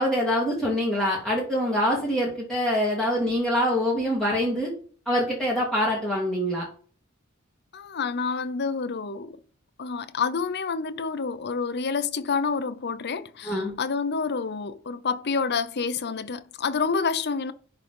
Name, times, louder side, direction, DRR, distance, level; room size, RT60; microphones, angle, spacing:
voice 1, 0.0-4.7 5.1-6.7 13.4-13.7, equal, 5° left, 2.2 m, -25 dB
voice 2, 7.7-9.4 9.8-17.5, left 5 dB, 50° left, 0.7 m, -28 dB
10.5 x 3.9 x 5.2 m
head